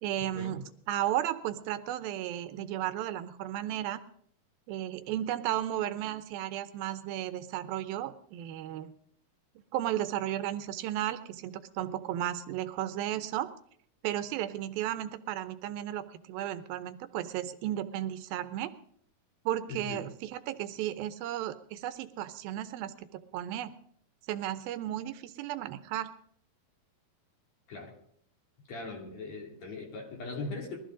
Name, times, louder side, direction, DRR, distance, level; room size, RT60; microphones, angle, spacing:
voice 1, 0.0-4.0 4.7-8.9 9.7-13.5 14.0-18.7 19.5-23.7 24.3-26.1, right 12 dB, 80° right, 11 dB, 2.5 m, -34 dB
voice 2, 19.7-20.0 27.7-27.9 28.7-30.8, left 3 dB, 50° left, 1 dB, 3.6 m, -40 dB
21.5 x 13.5 x 3.7 m, 0.66 s
omnidirectional pair, 4.3 m